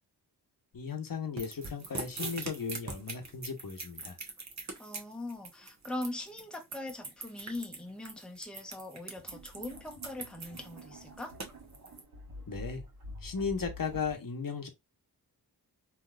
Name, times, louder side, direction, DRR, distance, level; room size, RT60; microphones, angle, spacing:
voice 1, 0.7-4.2 12.5-12.8 13.2-14.7, left 5 dB, 55° left, 1.0 m, -36 dB
sound 1, 1.4-12.0, right 3 dB, 40° right, 1.1 m, -42 dB
voice 2, 4.8-11.3, left 2 dB, ahead, 0.8 m, -41 dB
sound 2, 7.6-7.7 9.0-14.2, left 1 dB, 60° right, 1.6 m, -48 dB
3.4 x 2.8 x 2.4 m
cardioid pair, 45°, 40 cm